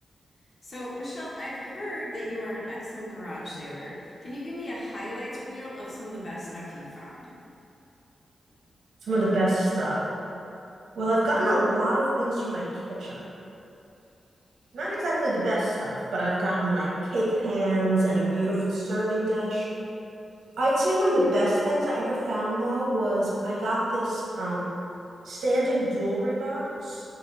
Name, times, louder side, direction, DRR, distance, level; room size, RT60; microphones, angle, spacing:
voice 1, 0.6-7.3, left 1 dB, 40° left, -7 dB, 0.7 m, -36 dB
voice 2, 9.0-10.0 10.9-13.2 14.7-19.7 20.6-24.6 25.2-27.0, right 1 dB, 90° right, -6 dB, 0.8 m, -26 dB
3.8 x 2.4 x 3.2 m, 2.7 s
wide cardioid pair, 170°, 0 cm